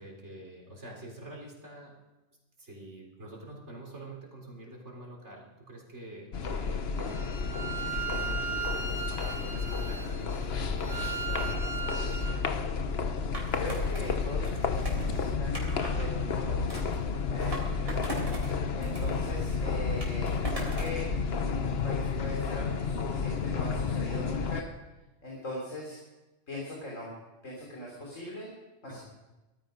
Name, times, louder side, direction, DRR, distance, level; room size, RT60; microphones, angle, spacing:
voice 1, 0.0-1.9 2.6-12.3 17.5-18.1 28.9-29.0, right 1 dB, 65° right, -2 dB, 4.2 m, -47 dB
sound 1, 6.3-24.6, left 5 dB, 55° left, 1.1 m, -31 dB
Bowed string instrument, 7.0-12.4, right 6 dB, 85° right, 3.1 m, -37 dB
Skateboard, 13.3-16.1 16.7-18.5 18.8-21.0, right 1 dB, 50° right, 4.0 m, -40 dB
voice 2, 13.5-15.7 15.9-16.9 17.3-17.7 18.8-21.1 21.4-24.7 25.2-26.0 26.5-27.1 27.4-28.5 28.8-29.0, left 1 dB, 90° left, -3 dB, 3.9 m, -40 dB
18.5 x 14.0 x 5.2 m, 1.1 s
omnidirectional pair, 1.3 m